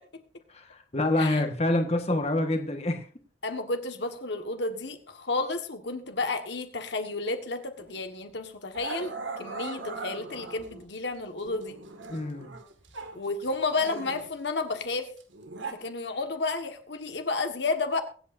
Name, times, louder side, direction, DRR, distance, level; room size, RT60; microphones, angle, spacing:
voice 1, 0.5-3.1 12.1-12.5, left 1 dB, 35° left, 5 dB, 1.4 m, -27 dB
voice 2, 3.4-9.1 9.4-11.8 13.1-15.1 15.7-18.0, left 3 dB, 65° left, 6 dB, 1.5 m, -31 dB
Growling, 7.8-8.0 8.7-10.8 11.4-13.2 13.4-15.7, right 4 dB, 85° right, 1.8 m, -39 dB
23.5 x 8.4 x 2.6 m, 0.43 s
head